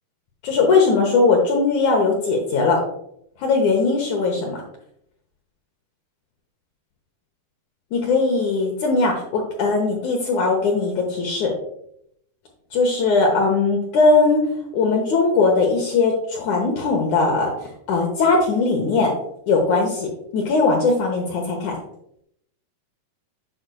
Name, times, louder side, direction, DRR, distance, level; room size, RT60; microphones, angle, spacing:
voice 1, 0.4-2.8 3.4-4.6 7.9-11.5 12.7-14.4 14.7-17.5 17.9-19.1 19.5-21.8, left 3 dB, 75° left, 1 dB, 1.7 m, -19 dB
7.7 x 6.3 x 2.2 m, 0.73 s
omnidirectional pair, 4.6 m